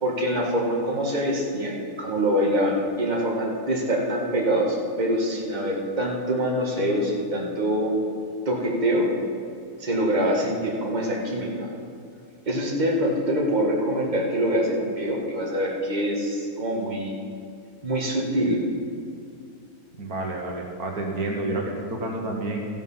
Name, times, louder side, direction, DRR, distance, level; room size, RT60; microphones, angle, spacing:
voice 1, 0.0-7.9 8.5-9.1 9.8-11.7 12.5-17.1 17.8-18.6, equal, 30° right, -2 dB, 1.7 m, -25 dB
voice 2, 20.0-22.6, right 2 dB, 75° right, 0 dB, 1.8 m, -29 dB
14.5 x 7.3 x 5.6 m, 2.4 s
omnidirectional pair, 1.6 m